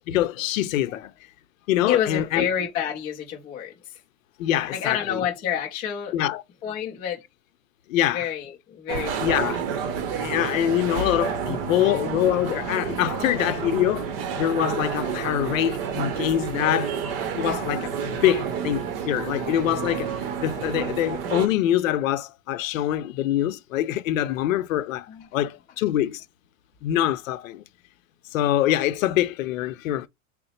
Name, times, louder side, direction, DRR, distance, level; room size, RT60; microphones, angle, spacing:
voice 1, 0.1-1.1 1.7-2.5 4.4-5.3 6.1-6.4 7.9-8.2 9.2-9.6 10.2-14.1 14.4-16.9 17.3-20.1 20.4-25.1 25.3-26.2 26.8-27.6 28.3-30.1, left 12 dB, 70° left, 0.6 m, -24 dB
voice 2, 1.8-4.0 4.7-6.1 6.6-7.2 8.1-9.6 25.1-25.3, left 9 dB, 15° left, 0.4 m, -29 dB
sound 1, 8.9-21.5, right 7 dB, 45° right, 0.8 m, -29 dB
3.8 x 2.0 x 4.2 m
supercardioid pair, 155°, 41 cm